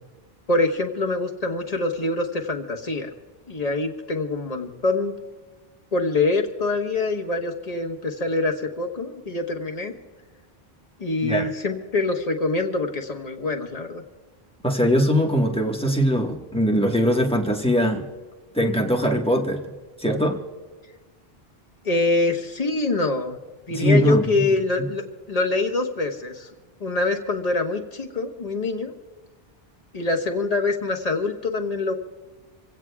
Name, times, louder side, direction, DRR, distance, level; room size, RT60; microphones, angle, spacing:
voice 1, 0.5-3.1 3.5-5.1 5.9-9.9 11.0-14.0 21.8-23.4 23.7-26.5 26.8-28.9 29.9-31.9, left 2 dB, 40° left, 2 dB, 1.4 m, -25 dB
voice 2, 14.6-18.0 18.5-19.6 20.0-20.4 23.7-24.3, equal, 5° left, 1 dB, 1.4 m, -21 dB
27.0 x 16.5 x 2.4 m, 1.3 s
omnidirectional pair, 1.0 m